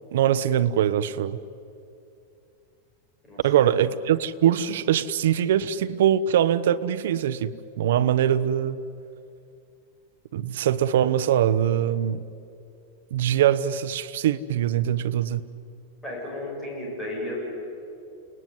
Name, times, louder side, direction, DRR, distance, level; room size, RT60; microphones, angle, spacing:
voice 1, 0.1-1.4 3.4-7.5 7.8-8.8 10.3-12.2 13.1-15.4, right 10 dB, 70° right, 1.1 m, -22 dB
voice 2, 3.3-3.7 16.0-17.4, left 1 dB, 10° left, 7.9 m, -34 dB
29.5 x 20.0 x 9.6 m
supercardioid pair, 175°, 0 cm